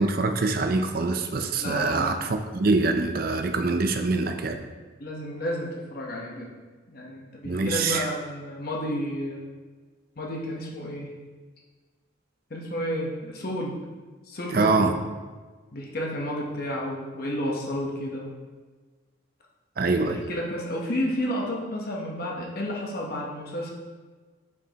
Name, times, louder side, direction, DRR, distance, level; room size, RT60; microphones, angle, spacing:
voice 1, 0.0-4.6 7.4-8.0 14.5-14.9 19.8-20.2, right 3 dB, 45° right, 6 dB, 0.5 m, -24 dB
voice 2, 1.6-2.1 5.0-6.5 6.9-9.4 10.2-11.1 12.5-13.7 14.3-14.9 15.7-18.3 19.9-23.7, equal, 45° left, -2 dB, 0.9 m, -31 dB
8.1 x 5.2 x 2.9 m, 1.4 s
head